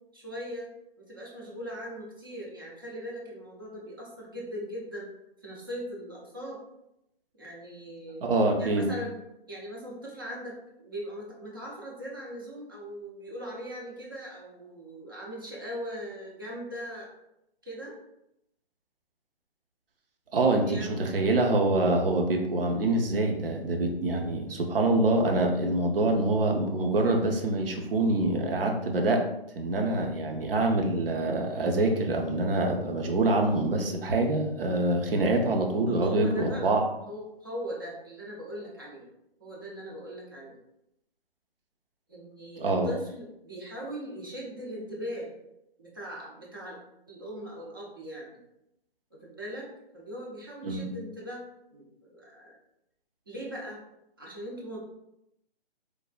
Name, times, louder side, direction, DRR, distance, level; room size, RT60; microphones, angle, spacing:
voice 1, 0.1-0.7 1.0-5.1 5.4-6.6 7.4-8.3 8.6-9.1 9.5-17.1 17.6-18.0 20.7-21.5 22.0-22.2 35.9-36.8 37.1-39.1 39.4-40.6 42.1-45.3 45.8-46.8 47.1-48.4 49.2-49.7 49.9-51.4 51.7-52.5 53.3-53.8 54.2-54.8, equal, 25° right, -4 dB, 0.4 m, -40 dB
voice 2, 8.2-8.9 20.3-29.2 29.6-36.8 42.6-42.9 50.6-50.9, right 2 dB, 65° right, 3 dB, 0.6 m, -25 dB
3.3 x 2.0 x 2.4 m, 0.83 s
figure-of-eight pair, 140°, 30 cm